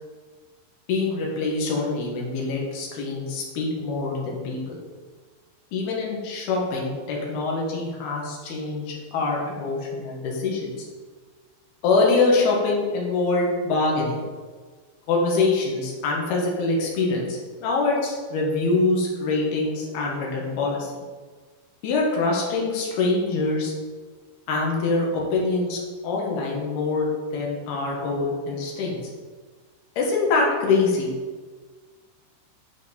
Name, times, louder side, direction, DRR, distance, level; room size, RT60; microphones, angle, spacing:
voice 1, 0.9-4.8 5.7-10.9 11.8-14.2 15.1-20.9 21.8-23.7 24.5-29.0 30.0-31.1, left 3 dB, 65° left, -3 dB, 3.1 m, -24 dB
11.0 x 4.5 x 4.3 m, 1.5 s
omnidirectional pair, 5.3 m